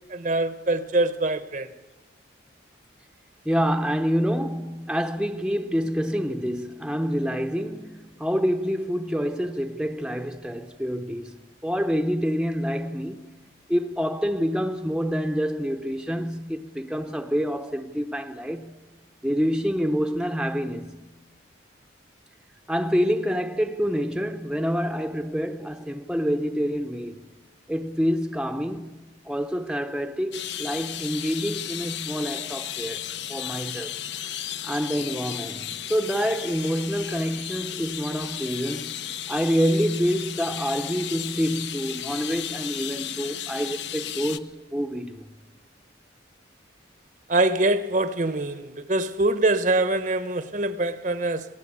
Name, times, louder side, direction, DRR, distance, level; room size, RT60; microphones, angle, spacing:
voice 1, 0.1-1.7 47.3-51.5, right 2 dB, 40° right, 1.0 m, -24 dB
voice 2, 3.4-13.3 13.7-18.8 19.2-21.0 22.7-27.2 27.7-28.9 29.2-34.0 34.6-39.0 39.3-45.3, equal, 5° right, 0.8 m, -27 dB
sound 1, 30.3-44.4, left 10 dB, 65° left, 0.8 m, -34 dB
28.0 x 19.0 x 8.6 m
head